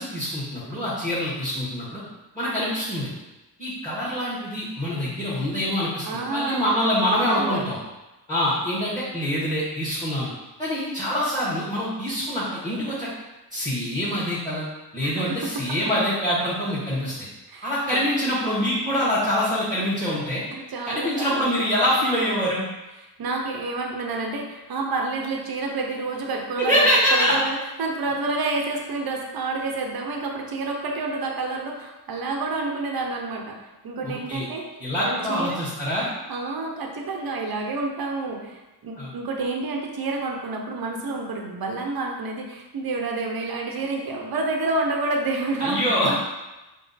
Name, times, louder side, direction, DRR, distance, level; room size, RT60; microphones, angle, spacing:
voice 1, 0.0-2.0 2.3-3.1 3.6-7.8 8.3-10.3 10.6-13.1 13.5-14.6 14.9-17.3 17.6-20.4 20.8-22.6 26.6-27.3 34.0-34.5 34.8-36.1 39.0-39.1 45.6-46.2, equal, 10° left, -9 dB, 1.4 m, -25 dB
voice 2, 6.0-6.9 7.3-7.6 15.0-15.4 17.5-18.0 20.5-21.5 23.2-33.6 33.8-34.7 35.0-35.6 36.3-46.2, right 3 dB, 55° right, 1 dB, 0.8 m, -29 dB
5.1 x 2.0 x 4.0 m, 1.1 s
cardioid pair, 75°, 42 cm